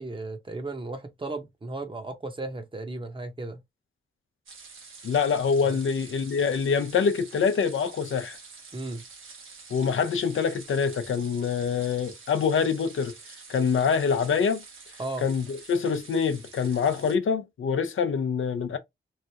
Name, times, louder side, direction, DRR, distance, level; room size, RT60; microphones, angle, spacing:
voice 1, 0.0-3.6 5.6-5.8 8.7-9.0 15.0-15.3, right 2 dB, 25° right, 0.8 m, -35 dB
sound 1, 4.5-17.2, right 4 dB, 75° right, 1.0 m, -47 dB
voice 2, 5.0-8.4 9.7-13.1 13.5-14.6 15.2-18.8, left 6 dB, 70° left, 0.6 m, -25 dB
3.2 x 2.4 x 2.8 m
wide cardioid pair, 110°, 21 cm